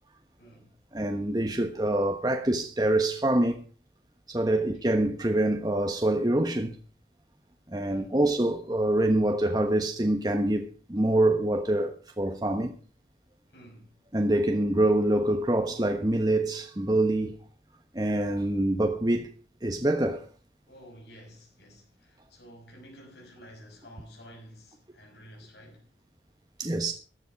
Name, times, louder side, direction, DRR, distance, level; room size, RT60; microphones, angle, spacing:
voice 1, 0.4-0.8 4.5-4.7 7.8-8.2 13.5-14.0 20.7-25.9, equal, 75° left, 6.0 m, -51 dB
voice 2, 0.9-3.6 4.3-6.8 7.7-12.7 14.1-17.4 17.9-19.3 19.6-20.3 26.6-26.9, right 1 dB, 20° right, 1.2 m, -25 dB
14.5 x 11.0 x 4.7 m
head